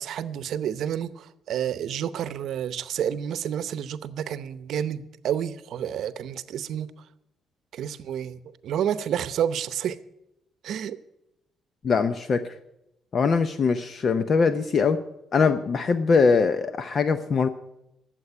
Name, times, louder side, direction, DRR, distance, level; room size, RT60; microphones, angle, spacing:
voice 1, 0.0-6.9 7.7-10.0 10.6-11.0, right 9 dB, 75° right, 0.7 m, -30 dB
voice 2, 11.8-12.4 13.1-15.0 15.3-17.5, left 5 dB, 50° left, 0.7 m, -22 dB
12.5 x 7.6 x 9.8 m
cardioid pair, 90°, 0 cm